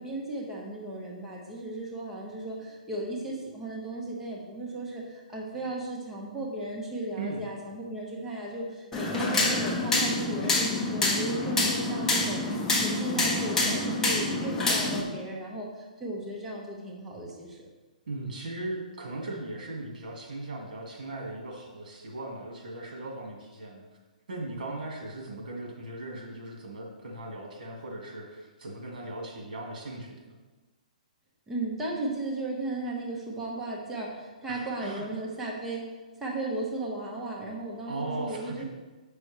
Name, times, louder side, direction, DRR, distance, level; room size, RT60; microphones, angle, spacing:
voice 1, 0.0-12.4 12.7-17.7 31.5-35.9 36.2-38.6, right 2 dB, 10° right, -4 dB, 1.1 m, -35 dB
sound 1, 8.9-15.0, left 2 dB, 10° left, 1.1 m, -27 dB
voice 2, 18.1-23.8 24.3-30.4 34.5-35.0 37.9-38.6, right 2 dB, 75° right, 0 dB, 2.1 m, -38 dB
7.6 x 6.2 x 3.4 m, 1.2 s
hypercardioid pair, 155°, 4 cm